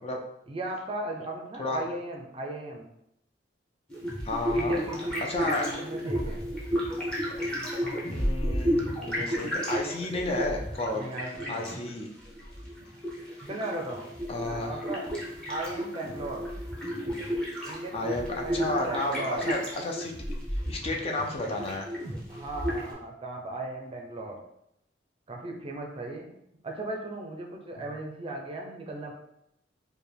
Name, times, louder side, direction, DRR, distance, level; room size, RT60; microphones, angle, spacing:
voice 1, 0.5-2.9 4.5-6.4 10.9-11.8 13.5-15.1 15.5-16.5 17.6-19.5 22.3-24.4 25.3-26.3 26.6-29.1, right 2 dB, 30° right, 1 dB, 0.5 m, -37 dB
sound 1, 3.9-22.9, equal, 5° left, 0.9 m, -32 dB
voice 2, 4.2-4.8 5.2-5.7 8.1-11.0 11.5-12.1 14.3-14.7 17.9-20.1 20.7-21.9, left 2 dB, 30° left, 1 dB, 0.4 m, -32 dB
4.7 x 2.2 x 3.3 m, 0.79 s
head